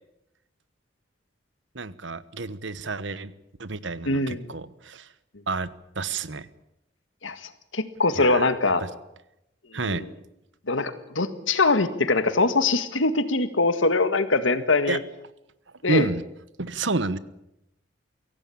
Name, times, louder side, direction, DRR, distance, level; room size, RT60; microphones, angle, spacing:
voice 1, 1.7-3.3 3.6-5.1 5.5-5.7 5.9-6.5 8.2-8.5 8.8-8.9 9.7-10.0 14.9-15.0 15.9-16.2 16.6-17.2, right 3 dB, 75° right, 16 dB, 1.2 m, -29 dB
voice 2, 4.0-4.5 7.2-8.8 9.7-10.1 10.7-15.0 15.8-16.1, left 3 dB, 90° left, 11 dB, 1.9 m, -23 dB
23.5 x 17.0 x 8.6 m, 0.85 s
head